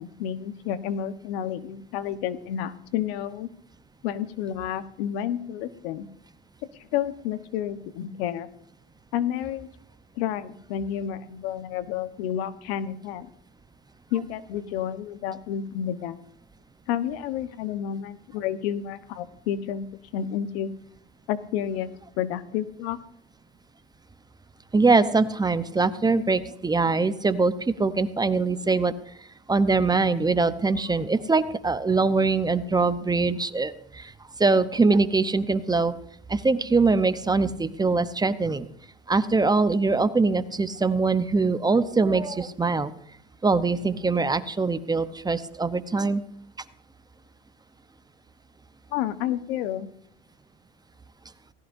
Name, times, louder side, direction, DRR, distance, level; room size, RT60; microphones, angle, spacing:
voice 1, 0.0-3.5 4.0-6.1 6.9-8.5 9.1-9.7 10.2-13.3 14.1-16.2 16.9-19.9 20.1-20.7 21.3-21.9 22.2-23.0 48.9-49.9, left 10 dB, 80° left, 12 dB, 1.3 m, -30 dB
voice 2, 24.7-28.9 29.5-34.1 34.4-35.9 36.3-38.7 39.1-42.9 43.4-46.2, right 3 dB, 15° right, 12 dB, 0.8 m, -23 dB
18.5 x 17.0 x 2.7 m, 0.69 s
supercardioid pair, 110°, 31 cm